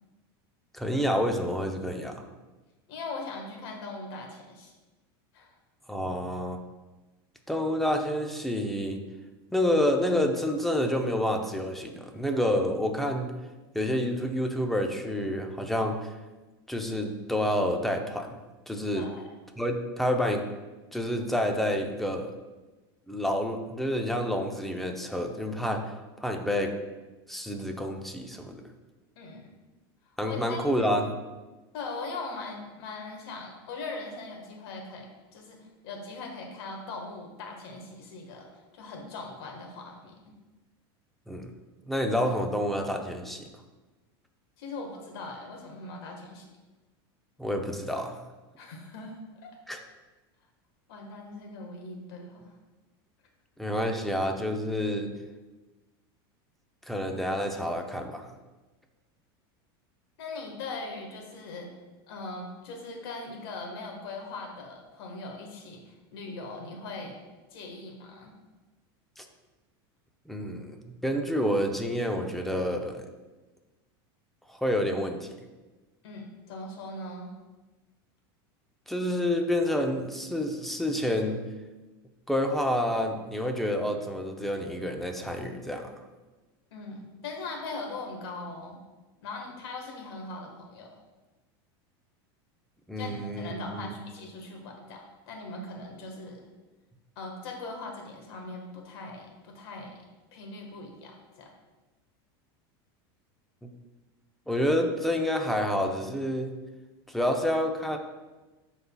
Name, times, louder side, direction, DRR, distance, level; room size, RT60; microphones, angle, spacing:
voice 1, 0.7-2.2 5.9-6.6 7.5-9.0 9.5-13.3 13.7-16.1 16.7-18.3 18.7-19.1 19.6-20.4 20.9-22.3 23.1-25.8 26.2-26.7 27.3-28.6 30.2-31.1 41.3-41.5 41.9-43.4 47.4-48.2 49.7-49.8 53.6-55.1 56.9-58.2 69.2-69.3 70.3-73.0 74.5-75.3 78.9-81.4 82.3-85.9 92.9-93.9 103.6-103.7 104.5-106.5 107.1-108.0, left 1 dB, ahead, 3 dB, 0.6 m, -28 dB
voice 2, 2.9-4.7 5.3-5.6 18.9-19.2 29.2-29.5 30.2-30.9 31.7-40.1 44.6-46.5 48.6-49.6 50.9-52.5 60.2-61.7 62.1-67.2 67.5-68.3 76.0-77.3 86.7-88.8 89.2-90.9 93.0-96.4 97.1-99.9 100.3-101.5, left 3 dB, 75° left, 1 dB, 1.5 m, -40 dB
11.0 x 4.1 x 2.3 m, 1.2 s
supercardioid pair, 125°, 13 cm